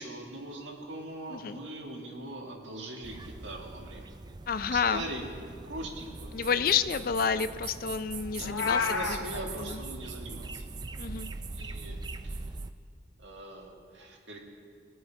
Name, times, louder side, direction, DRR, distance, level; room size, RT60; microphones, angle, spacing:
voice 1, 0.0-4.0 4.7-6.3 8.4-10.6 11.5-12.0 12.2-12.4 13.2-14.4, right 1 dB, 80° right, 0 dB, 1.9 m, -41 dB
sound 1, 3.0-12.7, right 3 dB, 20° right, 0.3 m, -41 dB
voice 2, 4.5-5.1 6.3-9.2 9.6-9.8 11.0-11.3, left 6 dB, 50° left, 13 dB, 0.4 m, -29 dB
Meow, 8.4-9.2, left 5 dB, 90° left, 1.0 m, -30 dB
21.0 x 7.8 x 4.6 m, 2.2 s
head